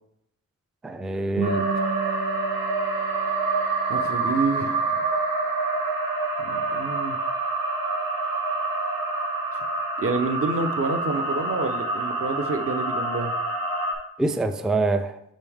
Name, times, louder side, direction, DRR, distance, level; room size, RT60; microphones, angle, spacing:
voice 1, 0.8-1.9 14.2-15.1, right 2 dB, ahead, 9 dB, 0.3 m, -25 dB
Guitar, 1.4-4.4, right 6 dB, 70° right, 2.5 m, -35 dB
sound 1, 1.4-13.9, right 3 dB, 85° right, 1.8 m, -27 dB
voice 2, 3.9-5.0 6.4-7.2 10.0-13.3, right 3 dB, 45° right, 7 dB, 0.8 m, -28 dB
6.1 x 5.3 x 3.5 m, 0.77 s
wide cardioid pair, 90°, 33 cm